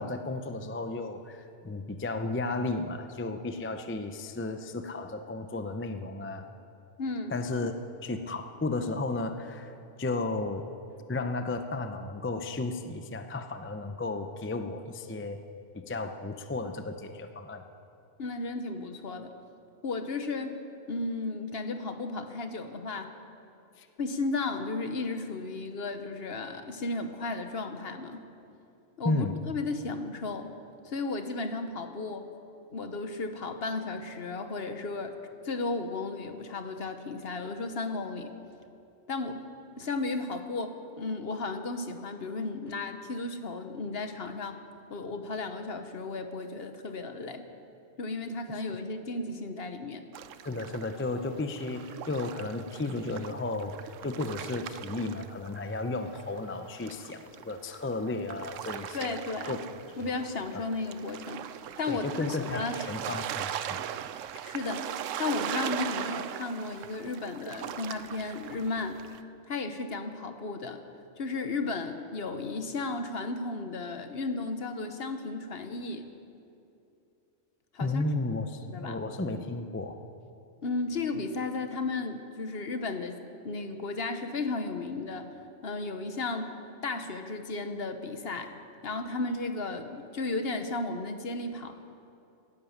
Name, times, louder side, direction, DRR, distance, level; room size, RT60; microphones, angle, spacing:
voice 1, 0.0-6.4 7.3-7.8 8.0-10.7 11.1-15.4 15.7-17.6 23.8-23.9 29.0-29.3 50.4-59.2 59.5-59.6 60.0-60.1 60.5-60.7 61.9-63.8 77.8-79.9, left 2 dB, 15° left, 7 dB, 0.4 m, -34 dB
voice 2, 7.0-7.4 18.2-19.3 19.8-20.6 20.9-23.1 24.0-28.2 29.0-30.6 30.8-32.3 32.7-35.2 35.4-38.3 39.1-39.4 39.8-44.6 44.9-47.4 48.0-50.0 58.9-59.6 60.0-61.5 61.8-62.8 64.4-64.9 65.2-69.0 69.5-70.8 71.2-76.1 77.7-78.0 78.7-79.0 80.6-83.2 83.4-85.3 85.6-86.5 86.8-88.5 88.8-91.8, left 3 dB, 55° left, 7 dB, 1.2 m, -34 dB
sound 1, 50.1-55.8 56.1-69.2, right 10 dB, 80° right, 1.0 m, -39 dB
18.0 x 10.5 x 7.2 m, 2.6 s
omnidirectional pair, 1.3 m